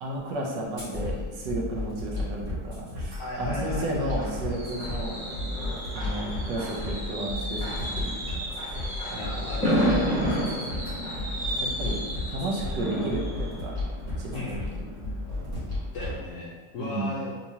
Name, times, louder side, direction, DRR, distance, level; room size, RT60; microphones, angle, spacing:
voice 1, 0.0-5.2 5.9-8.3 9.1-9.5 10.4-11.0 11.6-12.0 12.3-13.7 14.2-14.8 16.8-17.2, right 1 dB, 85° right, -2 dB, 1.4 m, -33 dB
sound 1, 0.8-16.2, left 2 dB, 45° right, 1.6 m, -34 dB
voice 2, 3.2-4.2 9.1-9.9 14.3-14.7 15.9-17.3, left 2 dB, 70° left, -4 dB, 0.7 m, -36 dB
Fireworks, 3.7-15.2 15.6-15.9 16.1-16.2, equal, 5° left, 1.1 m, -32 dB
3.6 x 3.0 x 2.7 m, 1.4 s
omnidirectional pair, 1.8 m